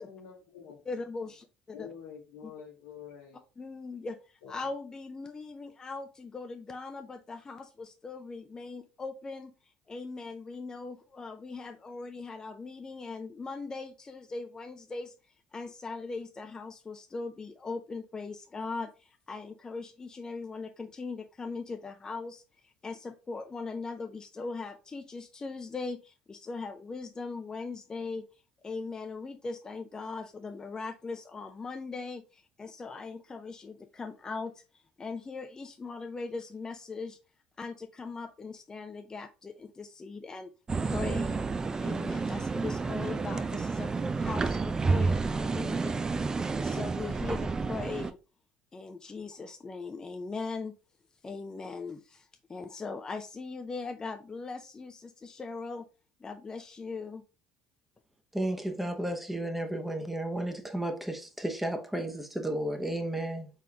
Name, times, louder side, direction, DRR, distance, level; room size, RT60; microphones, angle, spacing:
voice 1, 0.0-0.8 1.7-3.4 4.4-4.5, left 7 dB, 85° left, 1.4 m, -47 dB
voice 2, 0.9-1.9 2.4-2.5 3.6-9.5 9.9-15.1 15.5-28.3 28.6-34.6 35.0-37.2 37.6-40.5 40.8-41.4 41.8-43.9 44.2-46.0 46.5-48.2 48.7-50.7 51.2-55.9 56.2-57.2, left 4 dB, 25° left, 0.5 m, -40 dB
sound 1, 40.7-48.1, right 4 dB, 25° right, 0.4 m, -30 dB
voice 3, 58.3-63.5, right 1 dB, 5° right, 0.9 m, -33 dB
4.0 x 3.6 x 2.8 m
supercardioid pair, 75°, 3 cm